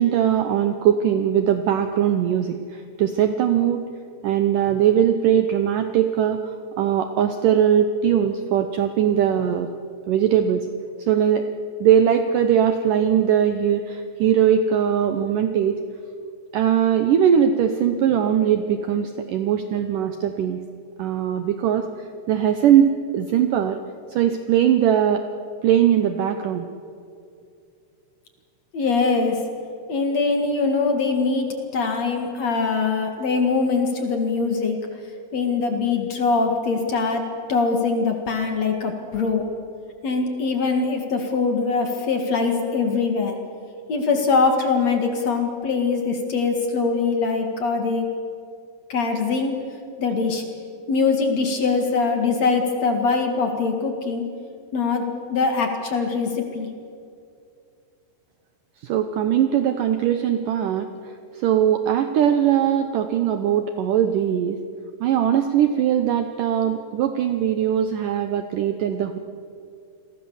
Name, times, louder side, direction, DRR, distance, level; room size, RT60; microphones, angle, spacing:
voice 1, 0.0-3.9 4.2-9.7 10.1-10.7 11.1-11.5 11.8-15.8 16.5-20.6 21.0-23.8 24.1-25.3 25.6-26.7 58.8-64.6 65.0-69.2, right 9 dB, 75° right, 8 dB, 2.0 m, -20 dB
voice 2, 28.7-29.4 29.9-31.5 31.7-34.8 35.3-37.2 37.5-39.5 40.0-43.4 43.9-48.1 48.9-49.5 50.0-50.4 50.9-54.2 54.7-56.7, left 4 dB, 50° left, 4 dB, 2.6 m, -22 dB
29.0 x 21.5 x 7.2 m, 2.5 s
omnidirectional pair, 4.8 m